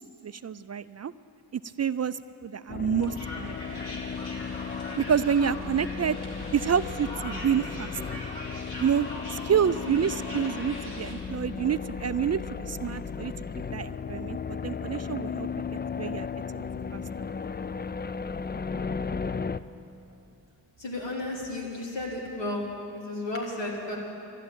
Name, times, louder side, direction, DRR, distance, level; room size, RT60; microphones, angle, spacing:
voice 1, 0.2-1.1 1.5-3.8 5.0-6.2 6.5-8.2 8.8-9.0 9.3-15.6 15.9-16.3 16.5-16.6, right 7 dB, 40° right, 14 dB, 0.4 m, -28 dB
sound 1, 2.7-19.6, left 5 dB, 25° left, 0.4 m, -35 dB
sound 2, 3.0-11.1, left 1 dB, 60° left, 3.4 m, -41 dB
voice 2, 20.8-22.7 22.9-24.0, left 2 dB, 80° left, -2 dB, 3.3 m, -33 dB
13.5 x 11.5 x 8.8 m, 3.0 s
cardioid pair, 55°, 43 cm